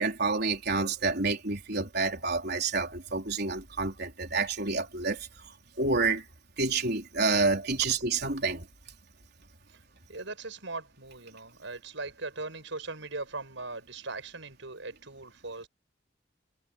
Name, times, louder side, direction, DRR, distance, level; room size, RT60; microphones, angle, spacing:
voice 1, 0.0-5.3 5.8-6.2 6.6-8.6, right 3 dB, 55° right, 4.2 m, -28 dB
voice 2, 10.1-15.7, right 3 dB, 70° right, 6.6 m, -40 dB
head